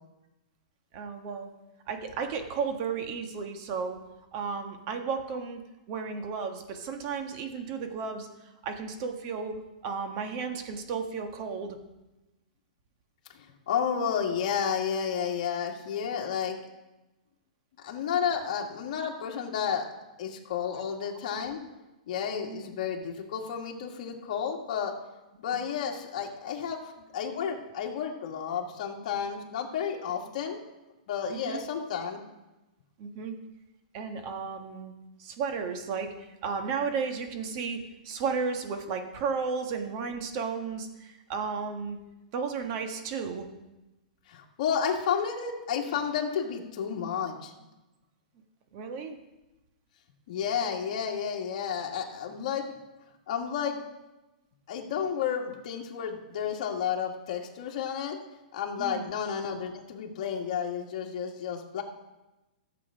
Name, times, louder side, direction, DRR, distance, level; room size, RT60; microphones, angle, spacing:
voice 1, 0.9-1.5 1.9-4.0 4.3-5.6 5.9-8.3 8.6-11.8 20.7-20.8 22.3-22.6 25.5-25.7 31.3-31.6 33.0-33.4 33.9-34.9 35.2-36.1 36.4-42.0 42.3-43.5 48.7-49.2 58.8-59.1, right 5 dB, 35° right, 6 dB, 1.3 m, -33 dB
voice 2, 13.3-16.6 17.8-19.9 20.2-21.6 22.1-25.0 25.4-26.8 27.1-30.6 31.1-32.2 44.3-47.5 50.3-52.7 53.3-53.8 54.7-58.2 58.5-61.8, left 7 dB, 50° left, 0 dB, 2.0 m, -31 dB
14.0 x 7.5 x 5.0 m, 1.0 s
hypercardioid pair, 155°, 5 cm